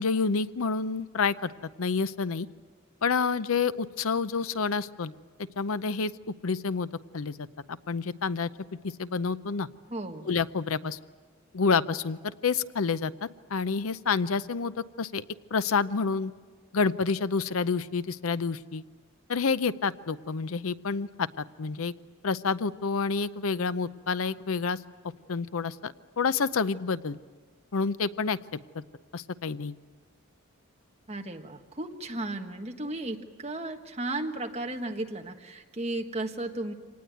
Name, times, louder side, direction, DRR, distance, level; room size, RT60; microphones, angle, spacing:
voice 1, 0.0-1.5 1.8-2.5 3.0-5.1 5.6-6.1 6.4-8.5 8.8-9.7 10.3-11.0 11.5-13.1 13.5-15.2 15.5-16.3 16.7-18.8 19.3-21.9 22.2-24.8 25.3-27.2 27.7-28.4 28.7-28.8 29.1-29.8, left 5 dB, 80° left, 15 dB, 0.6 m, -28 dB
voice 2, 9.9-10.3 31.1-36.7, right 2 dB, 30° right, 3 dB, 1.5 m, -34 dB
25.5 x 19.0 x 9.2 m, 1.5 s
head